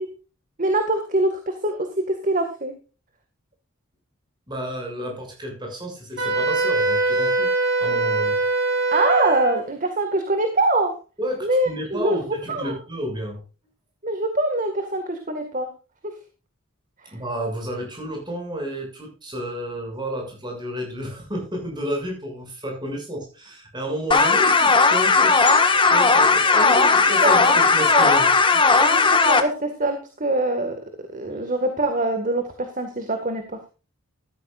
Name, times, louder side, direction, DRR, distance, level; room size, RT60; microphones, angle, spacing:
voice 1, 0.6-1.8 2.2-2.7 8.9-10.9 11.4-12.2 12.5-12.8 14.0-15.7 17.0-17.1 26.7-26.9 27.2-27.6 27.9-28.1 28.8-30.8 31.1-33.4, right 2 dB, 35° right, 6 dB, 1.9 m, -24 dB
voice 2, 4.5-7.5 7.8-8.3 11.2-13.4 17.1-28.8, equal, 20° right, 1 dB, 6.7 m, -31 dB
Wind instrument woodwind instrument, 6.2-9.6, right 3 dB, 50° right, 6.5 m, -22 dB
sound 1, 24.1-29.4, left 4 dB, 20° left, 1.6 m, -16 dB
14.5 x 13.5 x 2.5 m, 0.33 s
head